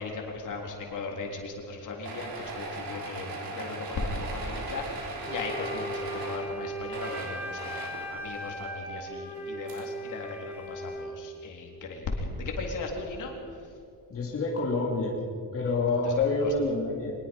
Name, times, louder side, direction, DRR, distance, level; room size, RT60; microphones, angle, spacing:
voice 1, 0.0-13.3 16.4-16.5, left 3 dB, 55° left, 1 dB, 4.0 m, -37 dB
sound 1, 2.0-6.6 6.8-8.1 9.3-9.4 9.7-9.8, right 3 dB, 70° right, 4.1 m, -38 dB
Wind instrument woodwind instrument, 5.2-11.1, right 1 dB, 5° right, 3.8 m, -38 dB
voice 2, 14.1-15.1 15.5-17.1, left 3 dB, 40° left, -3 dB, 3.1 m, -27 dB
24.0 x 21.0 x 5.6 m, 2.4 s
cardioid pair, 160°, 36 cm